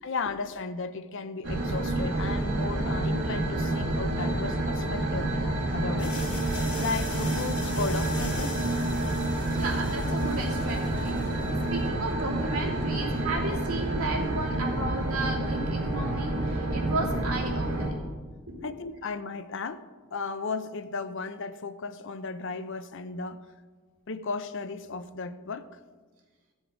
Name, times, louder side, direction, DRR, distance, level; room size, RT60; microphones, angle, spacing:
voice 1, 0.0-6.2 6.8-8.7 18.6-19.8 20.1-23.4 24.1-25.7, left 4 dB, 55° left, 0.6 m, -35 dB
sound 1, 1.4-17.9, right 2 dB, 55° right, 2.3 m, -28 dB
sound 2, 6.0-11.7, left 4 dB, 35° left, 2.4 m, -42 dB
voice 2, 9.5-11.1 11.7-18.0 18.5-18.8, right 2 dB, 75° right, 2.9 m, -34 dB
15.0 x 7.1 x 5.0 m
head